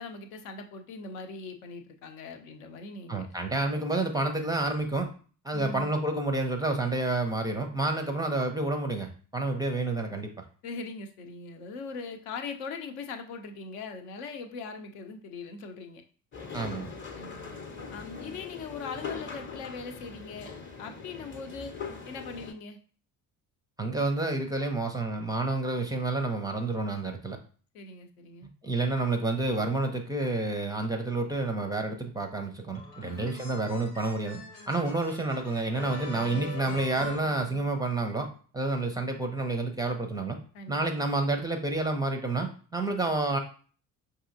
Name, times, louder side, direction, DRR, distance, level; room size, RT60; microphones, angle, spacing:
voice 1, 0.0-3.6 5.5-5.9 10.6-16.0 17.1-17.5 17.9-20.5 20.8-21.7 22.1-22.8 27.7-28.5 33.0-33.6 40.5-40.8, left 4 dB, 60° left, 6 dB, 0.7 m, -41 dB
voice 2, 3.1-5.1 5.4-10.4 16.5-16.9 23.8-27.4 28.6-34.4 34.7-38.3 38.5-40.4 40.7-43.4, right 2 dB, 10° right, 4 dB, 0.5 m, -29 dB
sound 1, 16.3-22.5, left 5 dB, 25° left, 0.8 m, -41 dB
sound 2, 32.7-38.1, left 2 dB, 80° left, 1.1 m, -43 dB
5.4 x 2.6 x 2.6 m, 0.42 s
figure-of-eight pair, 50°, 48 cm